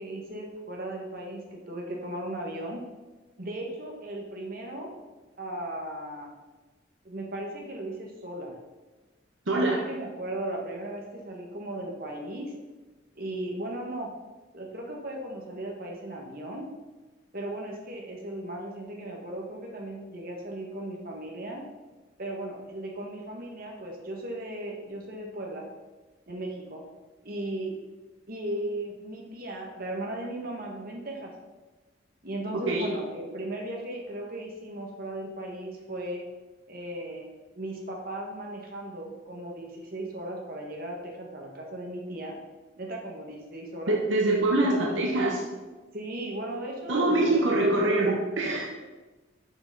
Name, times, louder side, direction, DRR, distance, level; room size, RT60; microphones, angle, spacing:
voice 1, 0.0-2.8 3.4-4.9 5.4-6.3 7.0-8.5 9.5-12.5 13.1-14.1 14.5-16.7 17.3-21.6 22.2-25.7 26.3-26.8 27.2-27.7 28.3-31.3 32.2-36.2 36.7-37.3 37.5-42.3 42.8-44.0 44.6-45.0 45.9-48.2, right 1 dB, 50° right, -1 dB, 1.6 m, -36 dB
voice 2, 9.5-9.8 32.7-32.9 43.9-45.4 46.9-48.7, right 2 dB, 75° right, -1 dB, 1.0 m, -24 dB
6.6 x 6.0 x 5.2 m, 1.2 s
head